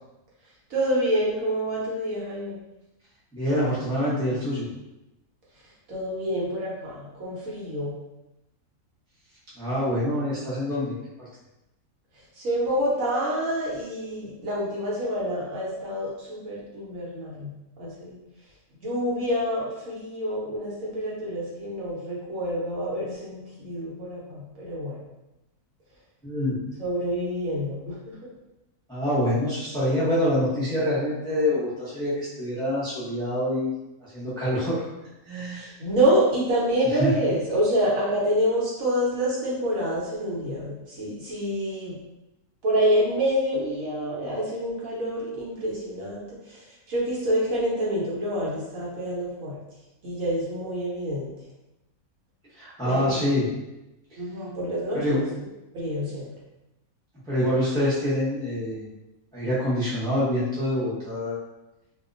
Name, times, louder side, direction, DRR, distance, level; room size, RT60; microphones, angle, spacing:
voice 1, 0.7-2.6 5.9-7.9 12.4-18.2 18.8-25.0 26.8-28.1 35.5-42.0 42.6-49.6 50.0-51.3 52.8-53.2 54.2-55.2 55.7-56.3, equal, 65° right, -6 dB, 1.1 m, -27 dB
voice 2, 3.3-4.7 9.6-11.0 26.2-26.6 28.9-33.7 34.0-34.8 35.3-35.7 37.0-37.1 52.6-53.5 54.9-55.2 57.2-58.9 59.3-61.4, left 1 dB, 5° left, -9 dB, 0.4 m, -26 dB
2.7 x 2.1 x 2.5 m, 0.95 s
omnidirectional pair, 1.6 m